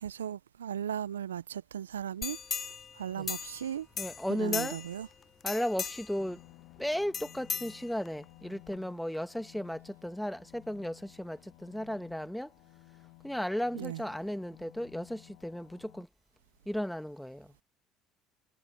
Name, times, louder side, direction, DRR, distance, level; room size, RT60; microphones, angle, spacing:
voice 1, 0.0-2.4 3.0-3.9 4.4-5.1 13.7-14.0, right 9 dB, 85° right, 0.4 m, -36 dB
sound 1, 2.2-3.7 4.0-5.0 5.4-6.2 7.1-8.2 8.7-8.8, left 6 dB, 40° left, 0.6 m, -37 dB
voice 2, 4.0-4.8 5.4-6.4 6.8-12.5 13.2-16.1 16.6-17.5, equal, 5° left, 1.6 m, -35 dB
sound 2, 6.2-16.1, left 30 dB, 70° left, 3.8 m, -56 dB
hypercardioid pair, 60°, 0 cm